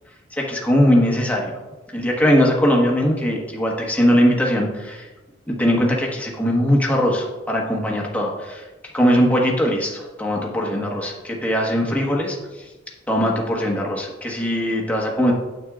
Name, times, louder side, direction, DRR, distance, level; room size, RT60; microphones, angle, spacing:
voice 1, 0.3-1.6 1.9-5.1 5.5-8.6 8.9-12.6 13.1-15.3, equal, 10° left, -2 dB, 1.2 m, -20 dB
9.2 x 8.1 x 2.4 m, 1.2 s
head